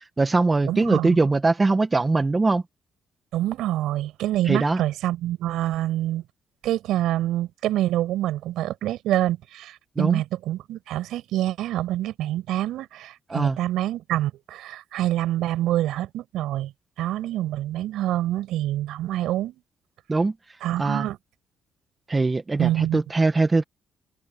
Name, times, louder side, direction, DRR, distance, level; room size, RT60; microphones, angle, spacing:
voice 1, 0.0-2.6 4.5-4.8 10.0-10.2 13.3-13.6 20.1-20.3 20.8-21.1 22.1-23.6, right 3 dB, 25° right, 1.6 m, -22 dB
voice 2, 0.7-1.2 3.3-6.2 6.6-16.7 17.0-19.6 20.6-21.2 22.6-23.0, right 14 dB, 85° right, 7.6 m, -26 dB
cardioid pair, 90°, 0 cm